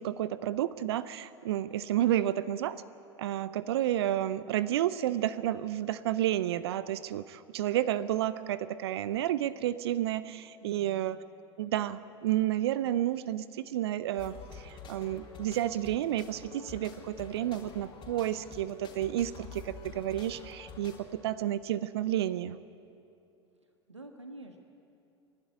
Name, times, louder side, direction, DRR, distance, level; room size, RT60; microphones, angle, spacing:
voice 1, 0.0-2.8 3.2-11.2 11.6-22.6, right 12 dB, 65° right, 16 dB, 0.6 m, -31 dB
sound 1, 14.2-21.0, left 5 dB, 35° left, 3.6 m, -48 dB
voice 2, 23.6-24.6, right 1 dB, 85° right, 4 dB, 1.4 m, -49 dB
29.5 x 12.0 x 8.8 m, 2.8 s
figure-of-eight pair, 80°, 15 cm